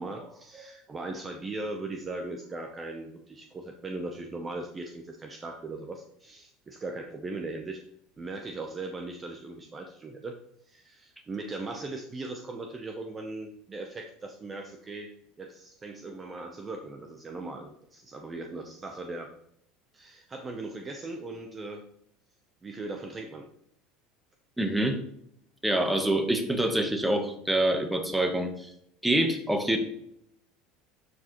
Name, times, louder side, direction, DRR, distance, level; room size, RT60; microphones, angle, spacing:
voice 1, 0.0-7.8 8.2-10.4 10.6-15.1 15.4-19.3 19.9-21.8 22.6-23.5, right 2 dB, 20° right, 4 dB, 0.7 m, -39 dB
voice 2, 24.6-25.0 25.6-28.7 29.0-29.8, right 1 dB, 5° right, 5 dB, 1.0 m, -26 dB
12.0 x 4.8 x 3.0 m, 0.73 s
supercardioid pair, 140°, 0 cm